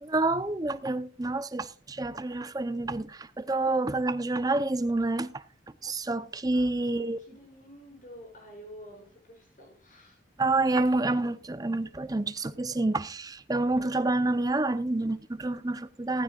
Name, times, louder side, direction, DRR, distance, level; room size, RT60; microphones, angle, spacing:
voice 1, 0.0-5.4 5.8-7.2 10.4-16.2, right 2 dB, 20° right, 0.7 m, -28 dB
voice 2, 6.5-10.2, equal, 45° left, 6.9 m, -50 dB
16.0 x 15.0 x 2.4 m
head